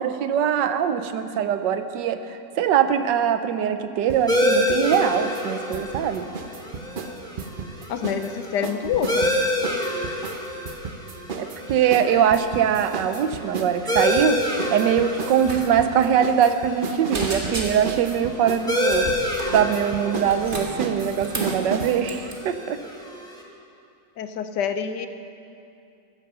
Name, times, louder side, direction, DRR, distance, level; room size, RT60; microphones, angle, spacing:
voice 1, 0.0-6.3 11.4-14.4 14.7-19.1 19.5-22.8, right 8 dB, 75° right, 10 dB, 1.3 m, -22 dB
sound 1, 4.1-5.1 5.3-8.3 8.6-22.0, right 4 dB, 55° right, 0.5 m, -33 dB
sound 2, 4.3-23.4, left 1 dB, 5° left, 1.2 m, -29 dB
voice 2, 7.9-9.4 12.0-12.2 24.2-25.1, left 7 dB, 70° left, 9 dB, 1.2 m, -27 dB
sound 3, 15.4-15.6 15.9-16.0 16.5-16.8 17.1-18.0 18.9-19.6 20.1-21.6 22.0-22.3, right 2 dB, 30° right, 1.7 m, -33 dB
15.0 x 9.2 x 6.7 m, 2.6 s
omnidirectional pair, 2.0 m